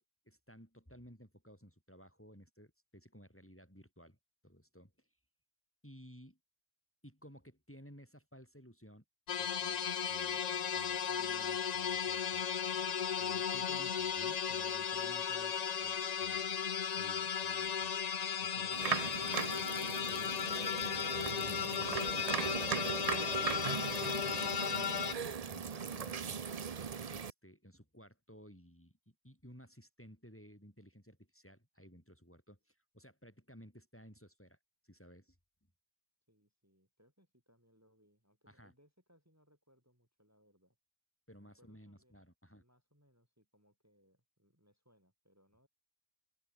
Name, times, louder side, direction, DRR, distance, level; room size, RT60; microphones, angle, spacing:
voice 1, 0.0-4.2 4.4-5.1 5.8-6.4 7.0-9.0 9.4-9.8 10.1-10.4 10.7-12.4 13.2-16.4 17.0-18.0 18.4-19.4 20.1-26.5 27.1-34.6 34.8-35.4 38.5-38.7 41.3-42.6, equal, 10° left, 7.5 m, -57 dB
sound 1, 9.3-25.1, left 8 dB, 50° left, 0.5 m, -35 dB
sound 2, 18.7-27.3, right 6 dB, 40° right, 0.6 m, -39 dB
voice 2, 36.3-40.8 41.4-42.2 42.6-45.7, equal, 10° right, 6.9 m, -71 dB
omnidirectional pair, 1.4 m